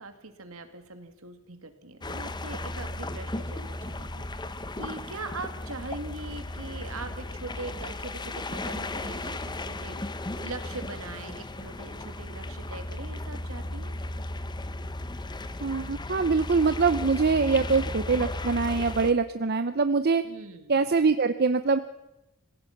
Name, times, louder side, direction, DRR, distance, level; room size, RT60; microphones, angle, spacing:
voice 1, 0.0-13.9 20.2-20.8, right 3 dB, 70° right, 8 dB, 2.4 m, -41 dB
sound 1, 2.0-19.1, left 2 dB, 20° left, 0.9 m, -35 dB
voice 2, 15.6-20.2 20.7-21.8, right 4 dB, 45° right, 10 dB, 0.7 m, -24 dB
26.0 x 16.5 x 6.0 m, 0.94 s
head